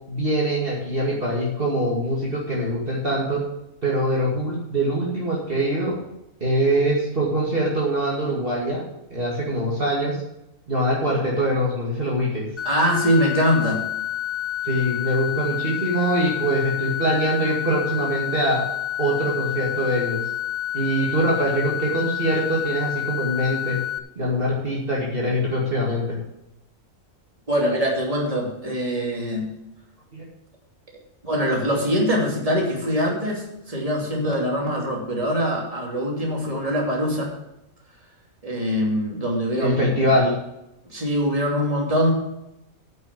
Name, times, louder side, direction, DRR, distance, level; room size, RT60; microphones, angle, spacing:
voice 1, 0.1-3.4 3.8-6.0 6.4-8.8 9.1-10.2 10.7-12.5 14.6-18.6 19.0-20.2 20.7-23.8 24.2-26.2 30.1-30.2 39.6-40.4, right 1 dB, 40° right, -4 dB, 2.5 m, -23 dB
sound 1, 12.6-24.0, left 13 dB, 35° left, 0.9 m, -29 dB
voice 2, 12.6-13.8 27.5-29.5 31.2-37.3 38.4-40.1 40.9-42.1, equal, 25° right, -2 dB, 2.8 m, -23 dB
9.4 x 7.4 x 7.4 m, 0.87 s
omnidirectional pair, 1.4 m